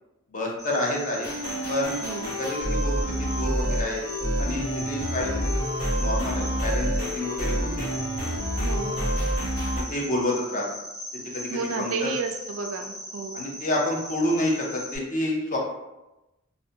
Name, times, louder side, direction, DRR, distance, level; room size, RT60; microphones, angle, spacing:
voice 1, 0.3-1.3 1.7-2.0 2.4-2.9 3.2-4.0 4.4-5.6 6.0-7.9 9.9-10.6 11.3-11.5 11.8-12.1 13.3-15.6, left 1 dB, 40° left, -2 dB, 0.5 m, -28 dB
Cricket, 0.6-15.0, equal, ahead, 0.9 m, -39 dB
sound 1, 1.2-9.8, equal, 70° left, 1.1 m, -28 dB
voice 2, 2.0-2.3 8.6-9.0 11.5-13.4, right 4 dB, 70° right, 5 dB, 0.3 m, -32 dB
2.5 x 2.1 x 2.7 m, 0.99 s
head